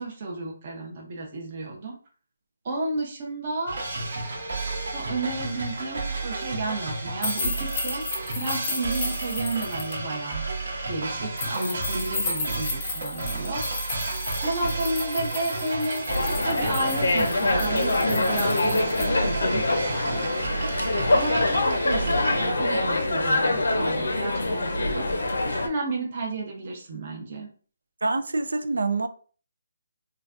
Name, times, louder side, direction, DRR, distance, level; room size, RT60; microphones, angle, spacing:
voice 1, 0.0-2.0 2.6-3.8 4.9-8.0 8.3-10.4 10.9-13.8 14.4-20.3 20.6-27.5, right 2 dB, 30° right, 0.7 m, -32 dB
sound 1, 3.7-22.4, right 2 dB, 50° right, 0.9 m, -32 dB
sound 2, 7.2-9.9 11.4-19.1, left 4 dB, 15° left, 0.6 m, -34 dB
sound 3, 16.1-25.7, left 2 dB, 85° left, 0.6 m, -25 dB
voice 2, 28.0-29.1, right 3 dB, 85° right, 0.4 m, -26 dB
3.8 x 2.2 x 2.4 m
hypercardioid pair, 175°, 0 cm